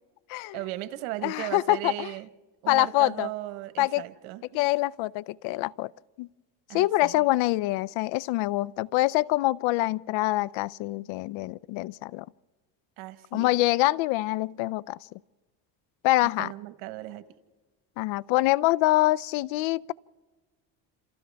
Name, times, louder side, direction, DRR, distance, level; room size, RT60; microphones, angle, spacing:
voice 1, 0.5-2.3 2.6-4.8 6.7-7.3 13.0-13.5 16.2-17.2, right 16 dB, 85° right, 1.3 m, -37 dB
voice 2, 1.2-2.1 2.7-3.3 3.8-4.0 4.5-5.9 6.2-6.3 6.7-12.3 13.3-15.0 16.0-16.5 18.0-19.9, left 18 dB, 75° left, 0.6 m, -25 dB
28.0 x 28.0 x 3.4 m
cardioid pair, 115°, 47 cm